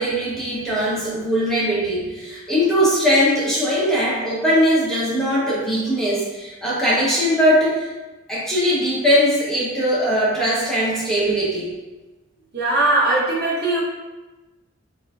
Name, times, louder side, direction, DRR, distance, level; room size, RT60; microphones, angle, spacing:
voice 1, 0.0-7.9 8.3-11.7, equal, ahead, -8 dB, 0.8 m, -20 dB
voice 2, 12.5-13.8, right 2 dB, 55° right, -5 dB, 0.9 m, -19 dB
3.8 x 3.1 x 2.3 m, 1.1 s
head